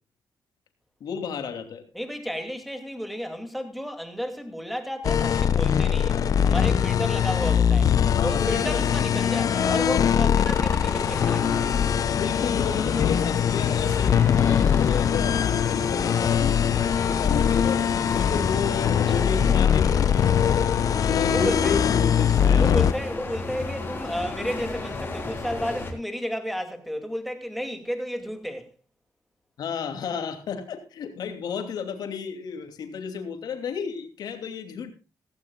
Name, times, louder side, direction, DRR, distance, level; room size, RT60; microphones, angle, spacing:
voice 1, 1.0-1.8 8.1-8.8 9.9-10.4 12.1-20.5 21.1-22.8 29.6-34.9, left 6 dB, 75° left, 2.8 m, -32 dB
voice 2, 1.9-7.9 8.2-11.7 19.1-19.2 20.9-21.8 22.6-28.7, equal, ahead, 2.5 m, -32 dB
sound 1, 5.0-22.9, left 8 dB, 55° left, 0.5 m, -22 dB
sound 2, 10.5-25.9, left 2 dB, 30° left, 3.7 m, -34 dB
16.5 x 16.0 x 2.4 m
cardioid pair, 125°, 7 cm